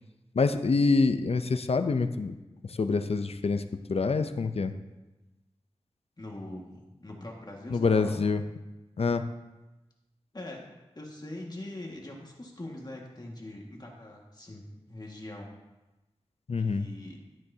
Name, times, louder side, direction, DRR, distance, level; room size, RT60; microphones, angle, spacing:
voice 1, 0.3-2.3 2.7-3.6 3.9-4.7 7.7-8.4 9.0-9.2 16.5-16.9, left 4 dB, 65° left, 9 dB, 0.5 m, -26 dB
voice 2, 6.2-8.2 10.3-10.6 11.0-15.5 16.6-17.2, left 1 dB, 40° left, -1 dB, 1.8 m, -42 dB
12.0 x 9.1 x 2.8 m, 1.1 s
wide cardioid pair, 65°, 11 cm